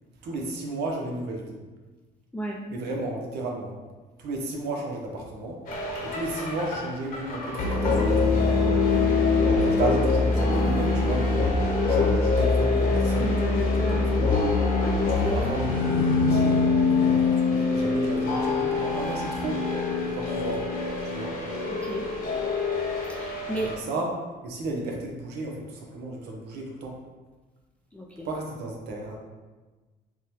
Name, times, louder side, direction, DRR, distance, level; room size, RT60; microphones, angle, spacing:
voice 1, 0.2-1.6 2.7-3.8 4.2-5.6 6.0-8.3 9.3-11.5 11.9-14.5 15.0-16.6 17.0-19.7 20.1-20.7 21.0-21.4 23.6-27.0 28.2-29.2, right 2 dB, 75° right, 0 dB, 0.9 m, -33 dB
sound 1, 5.7-23.8, left 3 dB, 55° left, 1.0 m, -24 dB
voice 2, 13.2-14.2 14.5-15.0 21.8-22.1 23.1-23.7 27.9-28.3, right 1 dB, 5° left, -3 dB, 0.4 m, -34 dB
4.8 x 2.2 x 3.0 m, 1.3 s
cardioid pair, 110°, 17 cm